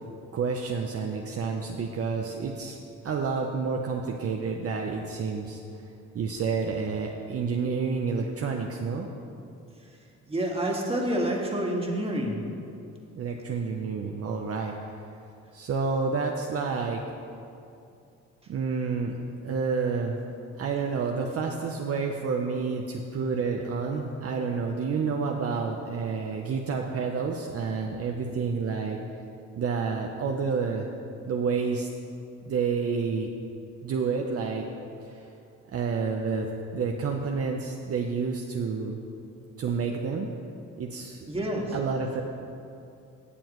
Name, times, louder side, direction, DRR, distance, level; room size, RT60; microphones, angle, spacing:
voice 1, 0.3-2.8 3.0-5.8 6.1-9.1 13.1-14.7 15.5-17.0 18.5-19.2 19.4-20.2 20.6-29.0 29.6-30.9 31.3-31.9 32.4-33.3 33.8-34.6 35.0-35.3 35.7-36.5 36.7-39.0 39.6-40.3 40.8-41.2 41.7-42.2, right 5 dB, 50° right, 2 dB, 0.7 m, -29 dB
voice 2, 10.3-12.4 41.3-41.7, right 1 dB, 20° right, -1 dB, 1.8 m, -28 dB
17.0 x 7.1 x 3.1 m, 2.6 s
cardioid pair, 90°, 30 cm